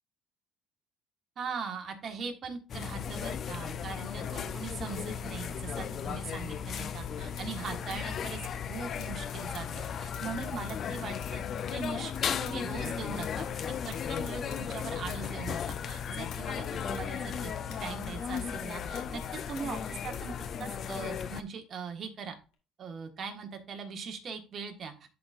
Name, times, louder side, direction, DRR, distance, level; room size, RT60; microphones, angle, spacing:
voice 1, 1.4-11.4 11.7-13.5 13.8-17.5 17.8-20.3 20.6-22.3 22.8-25.1, right 5 dB, 45° right, 5 dB, 1.5 m, -40 dB
sound 1, 2.7-21.4, left 7 dB, 50° left, 0.5 m, -36 dB
sound 2, 6.7-7.1 7.4-12.9 13.2-17.0 17.3-19.3 19.6-21.4 22.3-22.5, left 8 dB, 85° left, 1.8 m, -53 dB
11.0 x 4.2 x 2.5 m, 0.34 s
cardioid pair, 100°, 0 cm